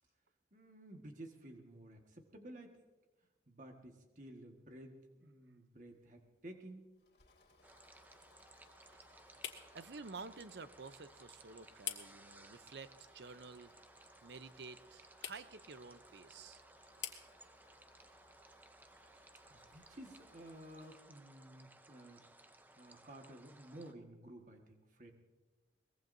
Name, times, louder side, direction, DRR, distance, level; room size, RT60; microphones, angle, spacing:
voice 1, 0.5-2.8 3.5-6.9 19.5-22.2 22.8-25.1, right 1 dB, 45° right, 3 dB, 1.6 m, -53 dB
sound 1, 5.9-20.7, left 10 dB, 85° left, 1.8 m, -54 dB
Engine / Mechanisms, 7.0-21.2, left 2 dB, 65° left, 3.4 m, -68 dB
sound 2, 7.6-23.9, right 2 dB, 10° right, 0.5 m, -61 dB
voice 2, 9.7-13.7 14.2-16.6, right 4 dB, 75° right, 13 dB, 0.7 m, -51 dB
23.0 x 20.0 x 2.7 m, 1.1 s
head